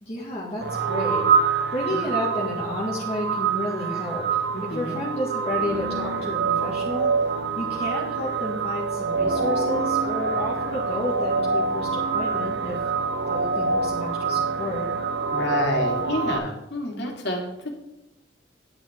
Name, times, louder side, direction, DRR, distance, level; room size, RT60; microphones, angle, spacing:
voice 1, 0.0-1.2 1.7-7.1 7.6-12.8 13.3-14.9, left 1 dB, 35° left, -6 dB, 2.0 m, -31 dB
sound 1, 0.6-16.4, right 5 dB, 60° right, 0.8 m, -25 dB
voice 2, 4.5-5.0 15.3-17.5, left 1 dB, 65° left, 0 dB, 2.5 m, -29 dB
10.5 x 9.4 x 3.7 m, 0.90 s
head